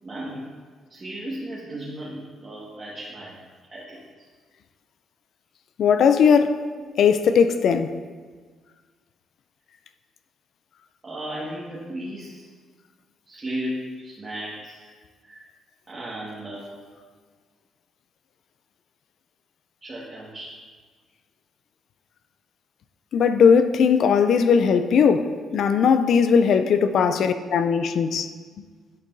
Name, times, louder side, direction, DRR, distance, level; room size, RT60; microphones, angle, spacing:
voice 1, 0.0-0.5 0.9-3.4 3.7-4.3 11.0-12.5 13.3-14.8 15.2-15.5 15.9-16.7 19.8-20.6 24.5-24.7 26.8-26.9, right 1 dB, 30° right, 1.7 m, -35 dB
voice 2, 5.8-6.6 7.0-7.9 23.1-28.3, left 6 dB, 65° left, 0.4 m, -19 dB
10.5 x 5.2 x 2.7 m
cardioid pair, 90°, 0 cm